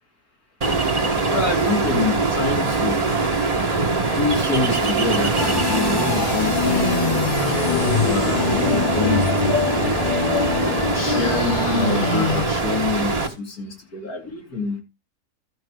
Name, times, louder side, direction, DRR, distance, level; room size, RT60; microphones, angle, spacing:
Ocean, 0.6-13.3, right 3 dB, 25° right, 1.5 m, -23 dB
voice 1, 1.3-3.1 4.0-7.0 8.0-10.2 10.6-14.8, left 3 dB, 65° left, 1 dB, 3.4 m, -27 dB
sound 1, 5.4-12.5, left 5 dB, 45° left, 0.7 m, -23 dB
13.5 x 5.5 x 4.9 m, 0.26 s
omnidirectional pair, 1.7 m